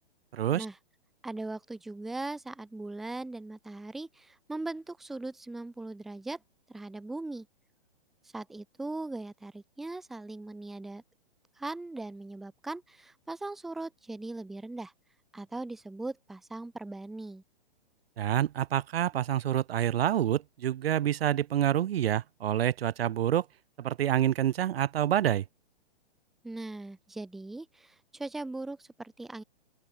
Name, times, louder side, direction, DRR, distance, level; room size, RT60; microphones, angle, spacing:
voice 1, 0.3-0.7 18.2-23.5 23.8-25.4, right 11 dB, 75° right, 0.6 m, -27 dB
voice 2, 1.2-6.4 6.7-7.5 8.3-11.0 11.6-14.9 15.3-17.4 26.4-29.4, right 2 dB, ahead, 0.7 m, -39 dB
open air
hypercardioid pair, 175°, 30 cm